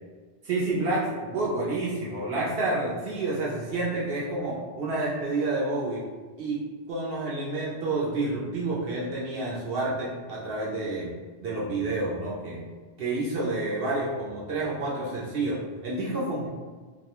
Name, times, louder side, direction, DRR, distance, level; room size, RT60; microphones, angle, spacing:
voice 1, 0.4-1.0 1.3-6.0 6.4-6.6 6.9-11.1 11.4-12.7 13.0-16.5, right 2 dB, 60° right, -5 dB, 0.7 m, -29 dB
2.3 x 2.1 x 2.8 m, 1.4 s
omnidirectional pair, 1.2 m